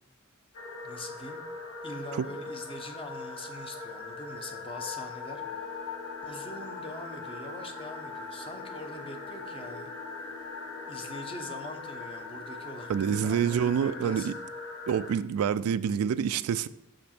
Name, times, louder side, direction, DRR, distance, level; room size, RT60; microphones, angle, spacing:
sound 1, 0.5-15.1, left 3 dB, 75° left, 1.3 m, -41 dB
voice 1, 0.8-1.4 1.8-5.8 6.2-9.9 10.9-14.3, left 1 dB, 25° left, 5 dB, 0.8 m, -43 dB
sound 2, 5.3-14.6, left 5 dB, 45° left, 2.2 m, -50 dB
voice 2, 12.9-14.3 14.9-16.7, right 8 dB, 75° right, 15 dB, 0.3 m, -27 dB
6.3 x 5.1 x 4.4 m, 0.83 s
head